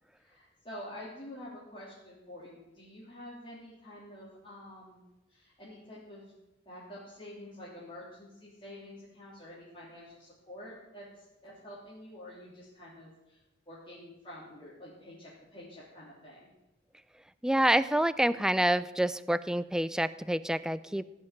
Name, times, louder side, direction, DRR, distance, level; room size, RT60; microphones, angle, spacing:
voice 1, 0.2-6.3 6.6-13.4 13.7-16.5, left 1 dB, 30° left, -8 dB, 3.3 m, -48 dB
voice 2, 17.4-21.1, right 1 dB, 5° right, 16 dB, 0.4 m, -27 dB
16.0 x 5.8 x 9.0 m, 0.96 s
head